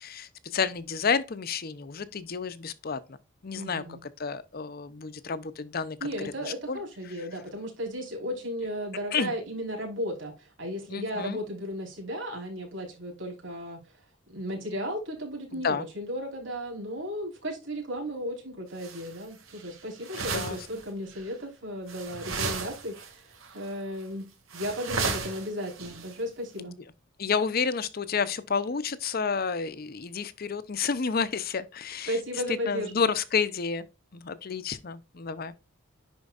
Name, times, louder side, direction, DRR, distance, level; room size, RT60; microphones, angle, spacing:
voice 1, 0.0-3.0 3.4-6.1 6.4-6.8 9.1-9.3 10.9-11.4 15.5-15.8 20.3-20.6 27.2-32.2 32.7-33.9 34.1-35.5, left 5 dB, 45° left, 0.6 m, -30 dB
voice 2, 3.5-4.0 6.0-13.8 14.3-24.3 24.5-26.7 32.1-33.1, equal, 65° right, 4.3 m, -35 dB
sound 1, 18.8-19.2 19.5-20.8 21.1-21.3 21.9-23.1 23.4-23.7 24.0-24.1 24.5-26.1, right 4 dB, 85° right, 2.2 m, -35 dB
10.5 x 4.5 x 2.5 m
head